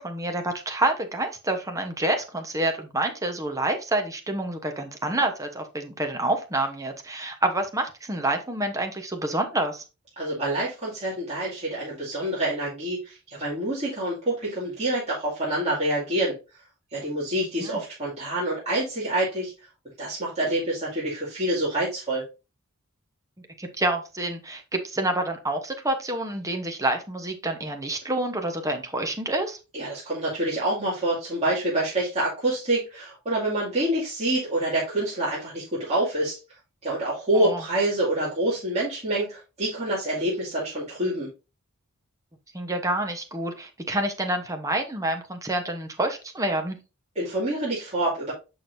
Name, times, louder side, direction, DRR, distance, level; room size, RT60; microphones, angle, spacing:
voice 1, 0.0-9.8 17.6-17.8 23.6-29.6 37.3-37.6 42.5-46.8, right 1 dB, 15° right, 5 dB, 1.0 m, -28 dB
voice 2, 10.2-16.3 16.9-19.5 20.0-22.3 29.7-36.4 36.8-41.3 47.2-48.3, right 1 dB, 30° right, -7 dB, 2.3 m, -27 dB
6.4 x 6.0 x 2.6 m, 0.29 s
head